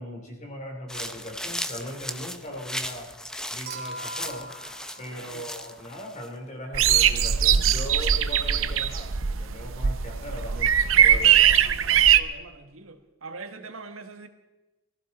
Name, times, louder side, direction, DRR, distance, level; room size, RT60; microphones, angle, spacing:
voice 1, 0.0-3.1 3.5-4.5 5.0-11.5, equal, 35° left, 2 dB, 3.2 m, -39 dB
sound 1, 0.9-6.3, left 1 dB, 5° left, 0.7 m, -36 dB
Human group actions / Chink clink / Liquid, 3.7-6.0 7.5-7.6, right 2 dB, 45° right, 2.3 m, -41 dB
voice 2, 5.1-5.5 11.1-14.3, right 3 dB, 90° right, 7 dB, 1.5 m, -43 dB
sound 2, 6.7-12.2, right 9 dB, 70° right, 0.7 m, -20 dB
21.5 x 15.0 x 4.2 m, 1.0 s
head